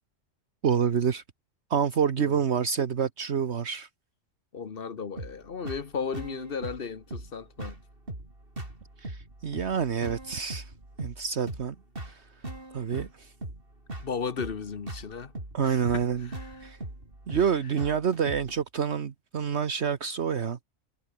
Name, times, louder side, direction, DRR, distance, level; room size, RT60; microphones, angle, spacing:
voice 1, 0.6-1.2 1.7-3.9 9.0-10.7 11.0-11.7 12.0-12.3 12.7-13.3 15.5-16.3 16.6-16.8 17.3-20.6, right 7 dB, 65° right, 1.4 m, -27 dB
voice 2, 4.5-7.8 14.0-15.3 15.6-16.6 17.3-17.4, left 6 dB, 50° left, 1.3 m, -35 dB
sound 1, 5.2-18.6, right 1 dB, 45° right, 5.5 m, -40 dB
omnidirectional pair, 1.3 m